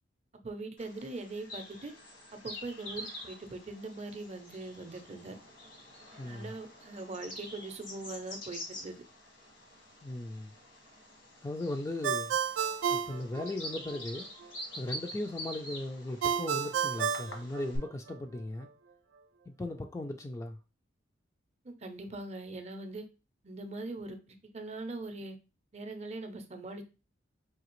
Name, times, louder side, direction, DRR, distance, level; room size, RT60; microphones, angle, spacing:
voice 1, 0.3-1.9 2.3-5.4 6.1-9.0 21.6-23.1 23.4-25.4 25.7-26.8, right 2 dB, 35° right, 0.5 m, -41 dB
Bird vocalization bird call bird song, 0.8-17.8, left 1 dB, 70° left, 1.2 m, -47 dB
voice 2, 6.2-6.5 10.0-10.5 11.4-12.4 12.9-14.3 14.7-18.7 19.5-20.6, left 1 dB, 15° left, 0.3 m, -37 dB
Ringtone, 12.0-14.0 16.2-18.2, right 7 dB, 90° right, 0.4 m, -31 dB
4.9 x 2.8 x 3.0 m
head